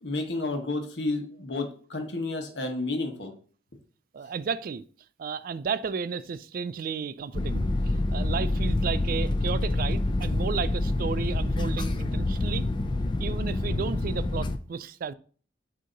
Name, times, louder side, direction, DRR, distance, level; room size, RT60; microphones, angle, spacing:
voice 1, 0.0-3.3, left 2 dB, 70° left, 1.2 m, -31 dB
voice 2, 4.1-4.8 5.2-12.7 13.2-15.1, right 6 dB, 50° right, 0.3 m, -33 dB
sound 1, 7.3-14.6, left 2 dB, 25° left, 0.4 m, -27 dB
6.3 x 2.8 x 5.2 m
head